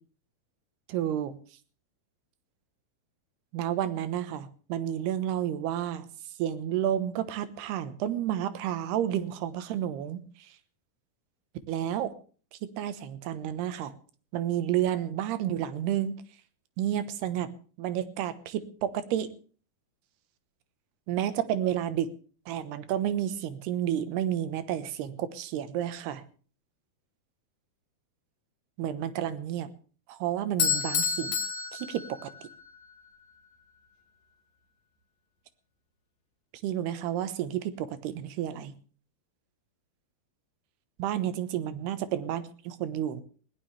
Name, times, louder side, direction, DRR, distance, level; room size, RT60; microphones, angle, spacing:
voice 1, 0.9-1.4 3.5-6.1 6.4-10.2 11.7-12.1 12.8-13.9 14.3-16.1 16.8-17.5 17.8-19.3 21.1-22.1 22.5-26.2 28.8-29.7 30.1-31.4 31.7-32.3 36.6-38.8 41.0-43.2, right 11 dB, 85° right, 12 dB, 3.2 m, -30 dB
Bell / Doorbell, 30.6-32.7, left 6 dB, 65° left, 3.7 m, -29 dB
20.5 x 17.5 x 3.3 m, 0.41 s
omnidirectional pair, 4.5 m